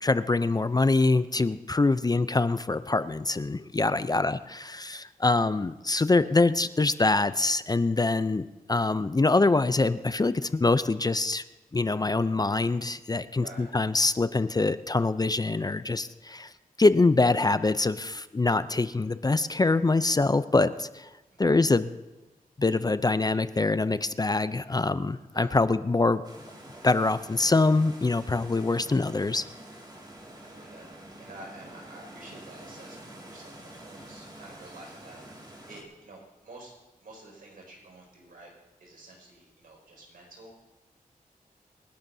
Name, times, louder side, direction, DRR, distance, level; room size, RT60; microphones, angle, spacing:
voice 1, 0.0-11.4 11.7-16.5 16.8-21.1 21.4-21.9 22.6-26.2 26.8-29.4, left 3 dB, 25° left, 13 dB, 0.5 m, -24 dB
voice 2, 21.3-21.6 25.3-25.6 28.7-28.9 30.4-30.9 31.2-36.7 37.0-38.5 38.8-40.5, right 2 dB, 70° right, -1 dB, 5.7 m, -49 dB
sound 1, 26.2-35.8, right 1 dB, 30° right, 3.2 m, -47 dB
27.0 x 11.5 x 2.7 m, 1.1 s
cardioid pair, 75°, 15 cm